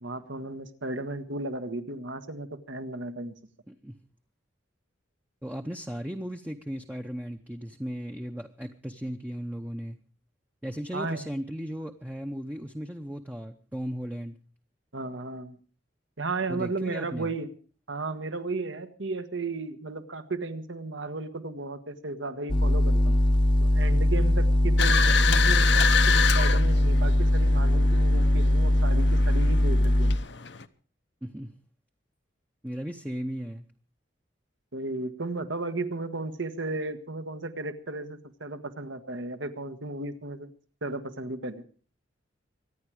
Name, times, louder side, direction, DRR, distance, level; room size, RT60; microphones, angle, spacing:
voice 1, 0.0-3.3 10.9-11.3 14.9-15.6 16.2-17.5 17.9-23.2 23.6-30.1 34.7-40.5 40.8-41.6, right 2 dB, 75° right, 9 dB, 1.4 m, -34 dB
voice 2, 3.7-4.0 5.4-10.0 10.6-14.4 16.5-17.3 31.2-31.5 32.6-33.6, equal, 10° right, 4 dB, 0.7 m, -36 dB
sound 1, 22.5-30.2, left 1 dB, 25° left, 0.7 m, -21 dB
sound 2, 24.8-30.6, left 7 dB, 65° left, 0.8 m, -28 dB
24.5 x 10.0 x 4.8 m, 0.40 s
head